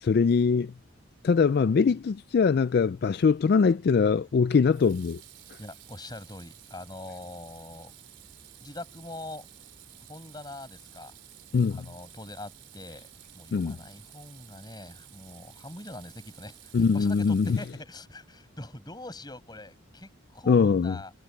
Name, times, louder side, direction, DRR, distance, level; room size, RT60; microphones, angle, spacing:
voice 1, 0.0-0.7 1.2-5.2 11.5-11.8 13.5-13.8 16.7-17.6 20.5-21.0, left 5 dB, 50° left, 0.3 m, -22 dB
Water tap faucet / Sink (filling or washing), 3.3-3.4 4.7-18.1, right 15 dB, 65° right, 4.1 m, -53 dB
voice 2, 5.6-7.9 8.6-9.5 10.1-11.1 11.7-21.1, left 1 dB, 20° left, 7.0 m, -43 dB
head